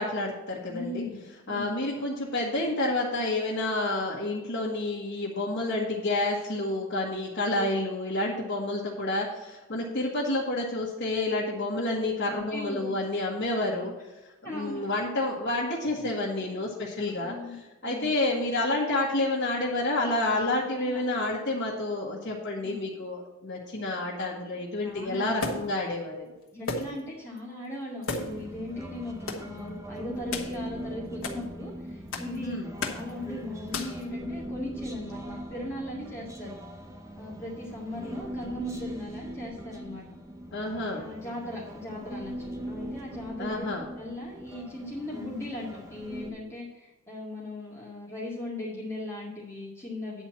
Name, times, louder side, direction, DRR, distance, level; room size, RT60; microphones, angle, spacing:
voice 1, 0.0-1.0 1.5-13.9 14.5-17.3 17.8-26.2 32.4-32.7 40.5-41.1 43.4-43.8, left 2 dB, 55° left, -6 dB, 1.6 m, -29 dB
voice 2, 0.7-1.7 5.7-6.0 12.3-12.9 14.4-14.9 17.2-17.6 17.8-18.1 20.8-21.0 22.6-22.8 24.8-25.5 26.5-32.6 32.9-36.5 37.2-40.0 40.9-43.7 44.0-50.2, left 1 dB, 15° left, -7 dB, 2.1 m, -38 dB
sound 1, 25.4-25.8 26.7-27.1 27.4-27.5 28.0-28.5 29.3-29.5 30.3-30.6 31.2-31.4 32.1-32.4 32.8-33.1 33.7-34.0, left 3 dB, 70° left, 1.4 m, -33 dB
Human voice, 28.1-46.3, equal, 15° right, 1.2 m, -40 dB
10.0 x 4.4 x 7.5 m, 1.1 s
head